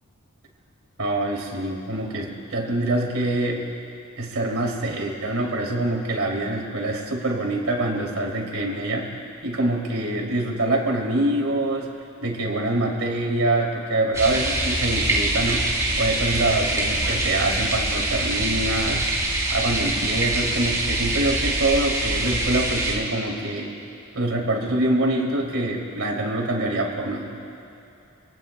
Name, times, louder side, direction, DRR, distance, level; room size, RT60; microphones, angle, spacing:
voice 1, 1.0-3.6 4.2-9.1 9.4-11.9 12.2-19.1 19.5-23.7 24.1-27.4, right 1 dB, 70° right, -1 dB, 3.0 m, -25 dB
sound 1, 14.1-23.0, right 2 dB, 15° right, 3.5 m, -24 dB
27.5 x 18.5 x 2.3 m, 2.8 s
head